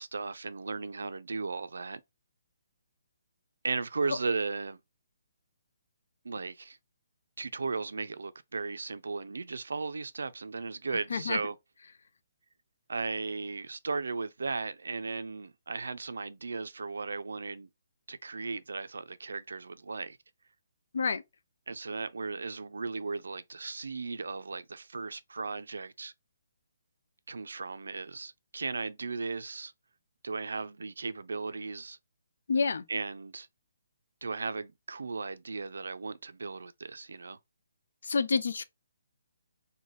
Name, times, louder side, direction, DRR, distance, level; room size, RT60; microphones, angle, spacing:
voice 1, 0.0-2.0 3.6-4.8 6.2-6.8 7.4-11.6 12.9-17.7 18.1-20.2 21.7-26.1 27.3-29.7 30.2-32.0 32.9-33.5 34.2-37.4, right 4 dB, 90° right, 0.3 m, -36 dB
voice 2, 32.5-32.8 38.0-38.6, left 5 dB, 70° left, 0.4 m, -28 dB
3.2 x 2.1 x 2.4 m
hypercardioid pair, 165°, 0 cm